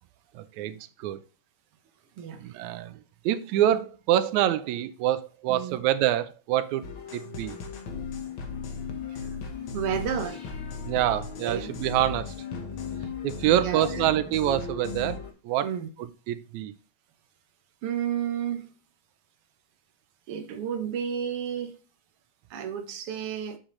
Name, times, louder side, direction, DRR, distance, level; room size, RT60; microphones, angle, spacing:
voice 1, 0.3-1.2 2.4-3.0 3.3-7.6 10.9-12.4 13.2-15.7 16.0-16.7, right 12 dB, 80° right, 2.1 m, -26 dB
voice 2, 2.2-2.6 5.5-5.8 9.1-9.3 9.7-10.5 11.4-11.7 13.5-14.0 15.6-15.9 17.8-18.7 20.3-21.8 22.5-23.6, right 8 dB, 60° right, 1.8 m, -32 dB
sound 1, 6.8-15.3, left 5 dB, 50° left, 1.8 m, -36 dB
7.9 x 6.3 x 3.2 m
omnidirectional pair, 3.3 m